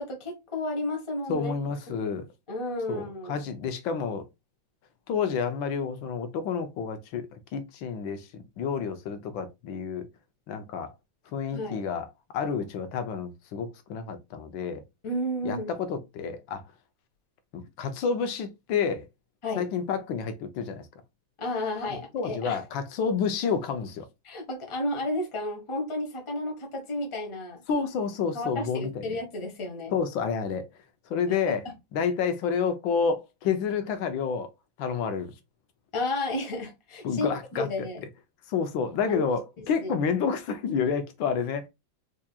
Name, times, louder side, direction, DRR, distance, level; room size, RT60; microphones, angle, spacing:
voice 1, 0.0-1.5 1.9-2.1 2.5-3.4 11.5-11.9 15.0-15.7 19.4-19.6 21.4-22.6 24.2-27.6 28.3-30.0 31.3-31.5 35.9-38.0 39.1-39.2 39.8-39.9, left 1 dB, 20° left, 0.8 m, -32 dB
voice 2, 1.3-2.3 2.9-4.3 5.1-8.3 8.6-10.1 10.5-10.9 11.3-12.1 12.3-14.8 15.4-16.6 17.5-19.1 19.6-20.9 22.1-24.1 27.7-29.1 29.9-30.6 31.1-31.7 31.9-34.5 34.8-35.3 37.0-37.7 38.5-41.7, left 6 dB, 85° left, 1.4 m, -29 dB
4.7 x 2.8 x 2.3 m
omnidirectional pair, 2.1 m